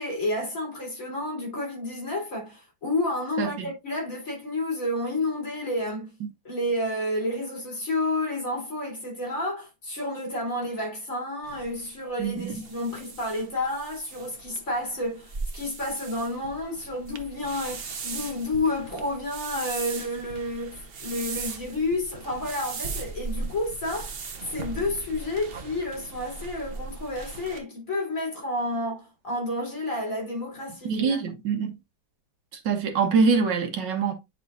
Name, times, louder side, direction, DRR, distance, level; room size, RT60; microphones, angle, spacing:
voice 1, 0.0-6.1 6.4-24.2 24.5-31.2, left 1 dB, 40° left, 3.8 m, -30 dB
voice 2, 3.4-3.7 12.2-12.6 30.9-31.7 32.7-34.1, right 5 dB, 70° right, 1.6 m, -24 dB
sound 1, 11.4-27.6, right 4 dB, 50° right, 0.7 m, -38 dB
9.2 x 4.8 x 2.5 m
omnidirectional pair, 2.1 m